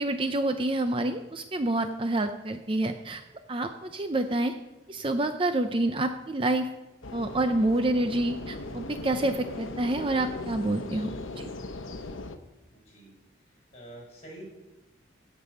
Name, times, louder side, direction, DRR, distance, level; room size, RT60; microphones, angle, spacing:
voice 1, 0.0-3.2 3.5-4.5 4.9-6.7 7.1-11.1 11.4-11.5, right 2 dB, 25° right, 8 dB, 0.5 m, -27 dB
sound 1, 7.0-12.4, left 2 dB, 90° left, 0.9 m, -39 dB
voice 2, 12.7-13.1 13.7-14.4, right 1 dB, 35° left, -2 dB, 5.3 m, -47 dB
16.5 x 5.4 x 6.6 m, 1.0 s
head